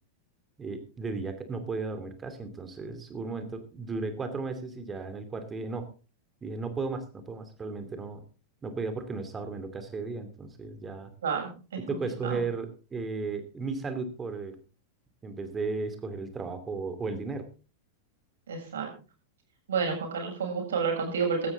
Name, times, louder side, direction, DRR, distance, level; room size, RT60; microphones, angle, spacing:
voice 1, 0.6-5.9 6.4-8.2 8.6-11.1 11.8-14.6 15.2-17.5, right 4 dB, 20° right, 9 dB, 2.8 m, -35 dB
voice 2, 11.9-12.4 18.5-18.9 19.7-21.5, right 5 dB, 65° right, 2 dB, 7.4 m, -30 dB
16.0 x 13.0 x 3.8 m, 0.34 s
figure-of-eight pair, 90°, 0 cm